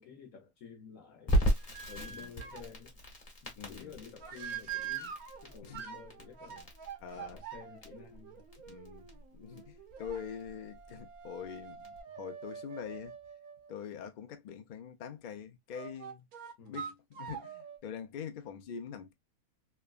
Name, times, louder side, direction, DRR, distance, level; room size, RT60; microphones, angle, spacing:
voice 1, 0.0-1.3 1.9-3.0 3.4-5.2 5.4-6.7 7.1-8.5 16.6-16.8, left 6 dB, 65° left, 1.0 m, -51 dB
Crackle, 1.3-12.0, equal, 30° left, 1.0 m, -36 dB
sound 1, 1.6-2.7 4.2-13.7 15.7-17.8, right 8 dB, 75° right, 1.2 m, -45 dB
voice 2, 3.6-4.0 5.6-5.9 7.0-7.4 8.7-13.2 13.7-16.3 16.7-19.1, left 7 dB, 85° left, 0.4 m, -44 dB
3.3 x 2.2 x 2.3 m
omnidirectional pair, 1.5 m